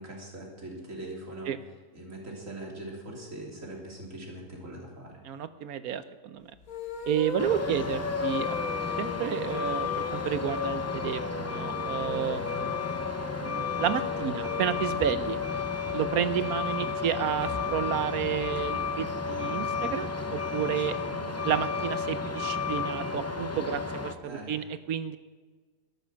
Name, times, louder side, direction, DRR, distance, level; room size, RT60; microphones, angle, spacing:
voice 1, 0.0-1.5 1.9-5.2 12.3-12.8 16.8-17.0 21.1-21.7 22.2-22.4 24.2-24.7, right 1 dB, 50° right, -1 dB, 3.5 m, -42 dB
voice 2, 5.2-6.4 7.1-8.6 9.0-12.4 13.4-15.4 15.9-21.0 21.4-25.2, right 9 dB, 70° right, 13 dB, 1.1 m, -31 dB
sound 1, 6.6-14.8, left 5 dB, 60° left, 1.5 m, -37 dB
Truck, 7.4-24.1, left 5 dB, 20° left, 0.4 m, -32 dB
12.5 x 12.0 x 6.3 m, 1.4 s
omnidirectional pair, 1.7 m